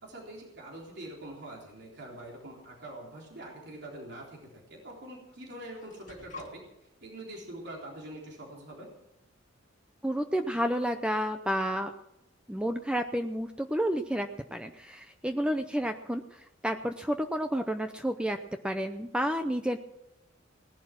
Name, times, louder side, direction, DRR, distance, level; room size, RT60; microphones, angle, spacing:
voice 1, 0.0-8.9, right 1 dB, 60° right, -2 dB, 3.8 m, -44 dB
sound 1, 2.2-2.7 3.9-4.0 4.9-5.0 5.3-6.5, left 4 dB, 40° left, 2.2 m, -49 dB
voice 2, 10.0-11.9 12.5-18.4 18.6-19.8, equal, 5° right, 7 dB, 0.6 m, -30 dB
18.5 x 11.5 x 6.1 m, 0.89 s
head